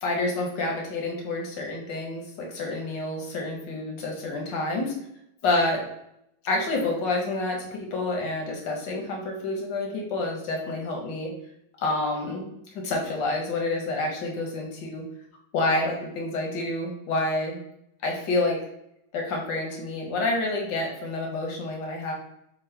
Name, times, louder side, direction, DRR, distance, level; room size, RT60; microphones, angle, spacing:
voice 1, 0.0-4.9 5.4-5.9 6.4-11.3 11.8-15.0 15.5-17.6 18.0-18.6 19.1-22.1, left 2 dB, 90° left, 0 dB, 1.5 m, -28 dB
3.7 x 2.1 x 4.3 m, 0.79 s
omnidirectional pair, 1.9 m